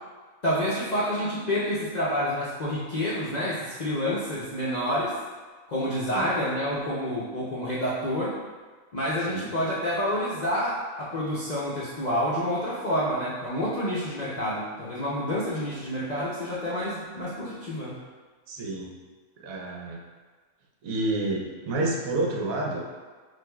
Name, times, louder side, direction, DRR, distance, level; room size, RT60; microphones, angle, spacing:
voice 1, 0.4-5.1 5.7-8.4 8.9-18.0, equal, 55° left, -9 dB, 0.5 m, -28 dB
voice 2, 18.5-18.9 19.4-20.0 20.8-22.8, right 2 dB, 75° right, 0 dB, 1.0 m, -29 dB
6.1 x 2.5 x 2.2 m, 1.4 s
omnidirectional pair, 1.5 m